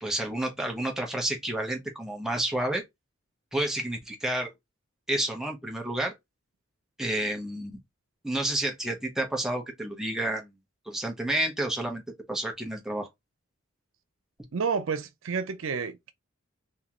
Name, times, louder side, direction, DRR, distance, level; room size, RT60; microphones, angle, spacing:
voice 1, 0.0-2.8 3.5-4.5 5.1-6.1 7.0-7.8 8.2-10.5 10.9-12.0 12.3-13.1, right 1 dB, ahead, 0.9 m, -30 dB
voice 2, 14.5-16.1, right 5 dB, 70° right, 0.5 m, -30 dB
3.6 x 2.9 x 2.9 m
head